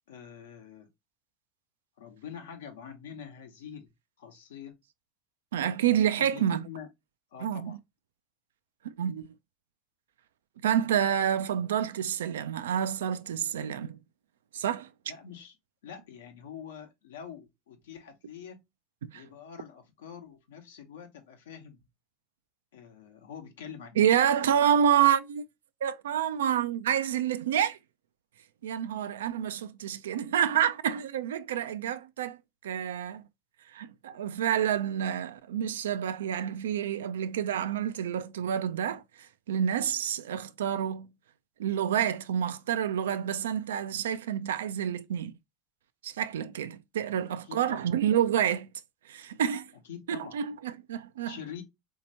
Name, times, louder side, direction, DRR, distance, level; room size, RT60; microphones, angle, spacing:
voice 1, 0.1-0.9 2.0-3.9 4.2-4.8 6.2-6.9 7.3-7.8 15.1-15.5 15.8-18.7 19.1-21.8 22.7-24.1 47.3-47.9 49.9-50.3 51.2-51.6, left 8 dB, 80° left, 0.9 m, -45 dB
voice 2, 5.5-6.6 7.4-7.8 8.8-9.3 10.6-14.0 14.5-14.9 19.0-19.2 24.0-25.4 25.8-27.8 28.6-32.4 32.6-33.2 33.7-39.0 39.5-41.1 41.6-45.3 46.0-48.7 49.1-49.7 50.1-51.4, right 9 dB, 80° right, 0.3 m, -28 dB
3.3 x 2.8 x 2.7 m
hypercardioid pair, 90°, 0 cm